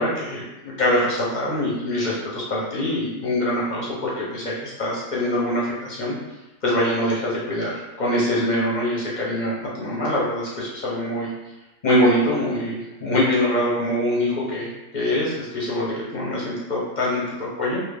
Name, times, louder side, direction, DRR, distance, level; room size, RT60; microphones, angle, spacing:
voice 1, 0.0-6.1 6.6-11.3 11.8-17.8, left 1 dB, 45° left, -5 dB, 0.6 m, -24 dB
3.3 x 2.3 x 3.3 m, 1.0 s
omnidirectional pair, 1.5 m